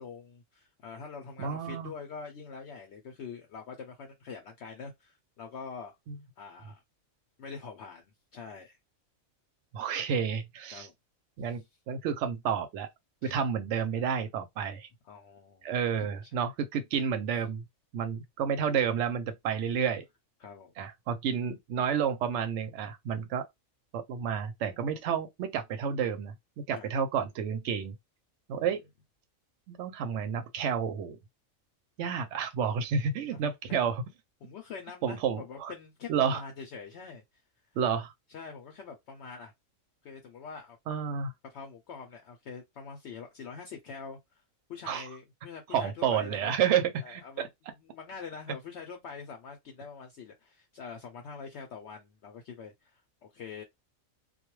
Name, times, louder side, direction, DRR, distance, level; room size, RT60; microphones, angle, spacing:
voice 1, 0.0-5.9 6.4-6.8 7.4-8.8 10.7-10.9 13.2-13.4 15.0-16.4 20.4-20.7 26.7-26.9 33.3-33.4 33.7-33.8 34.4-37.2 38.3-39.5 40.0-40.8 41.4-44.4 44.7-46.5 47.0-47.5 47.8-53.6, left 5 dB, 65° left, 0.8 m, -44 dB
voice 2, 1.4-1.9 6.1-6.2 9.7-10.9 11.4-12.9 13.2-14.9 15.6-17.6 17.9-20.0 20.8-23.4 23.9-26.3 26.7-27.9 28.5-28.8 29.7-31.2 32.0-34.0 35.0-35.7 36.1-36.4 37.8-38.1 40.9-41.3 44.9-45.1 45.7-47.2, right 7 dB, 65° right, 0.8 m, -30 dB
2.3 x 2.2 x 3.0 m
omnidirectional pair, 1.4 m